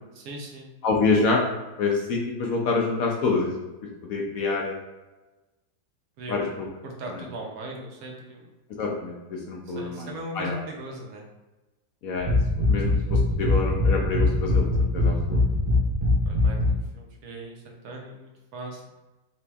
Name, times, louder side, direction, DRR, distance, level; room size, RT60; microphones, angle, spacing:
voice 1, 0.1-0.7 6.2-6.6 6.8-8.5 9.8-11.3 16.3-18.8, right 1 dB, 70° right, 0 dB, 1.1 m, -39 dB
voice 2, 0.8-1.4 1.8-3.5 4.1-4.7 6.3-6.7 7.1-7.2 8.8-9.1 9.5-10.6 12.0-12.3 12.7-14.7 14.9-15.4, left 4 dB, 70° left, 0 dB, 0.9 m, -26 dB
sound 1, 12.2-16.8, left 2 dB, 35° right, 1.3 m, -22 dB
4.1 x 3.0 x 2.3 m, 1.1 s
omnidirectional pair, 1.8 m